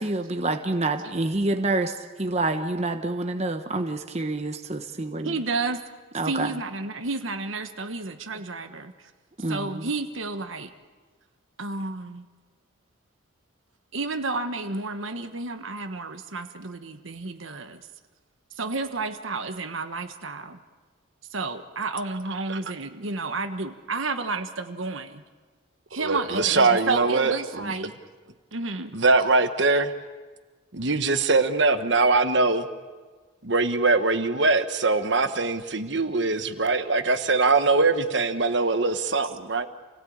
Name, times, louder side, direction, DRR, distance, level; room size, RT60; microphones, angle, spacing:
voice 1, 0.0-5.4 6.1-6.6 9.4-9.9, right 2 dB, 30° right, 1.0 m, -27 dB
voice 2, 5.2-5.8 6.2-8.9 9.5-10.7 11.6-12.2 13.9-17.9 18.6-20.6 21.3-25.2 25.9-27.9 28.5-28.9, right 3 dB, 75° right, 1.3 m, -31 dB
voice 3, 26.0-27.7 28.9-29.9 30.7-32.7 33.4-39.7, right 3 dB, 60° right, 1.3 m, -22 dB
28.0 x 17.0 x 8.8 m
head